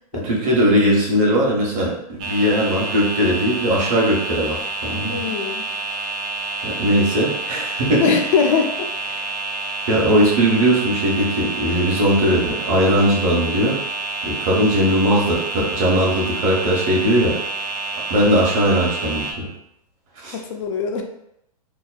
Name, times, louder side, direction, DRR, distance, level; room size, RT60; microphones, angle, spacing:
voice 1, 0.2-5.2 6.6-8.0 9.9-13.8 14.2-17.4 18.1-19.5 20.2-20.4, equal, 55° right, -3 dB, 1.0 m, -19 dB
sound 1, 2.2-19.3, right 3 dB, 35° right, 0.4 m, -28 dB
voice 2, 5.0-5.6 8.0-9.2 20.3-21.0, left 6 dB, 50° left, 3 dB, 0.5 m, -22 dB
2.8 x 2.1 x 2.3 m, 0.80 s
hypercardioid pair, 120°, 21 cm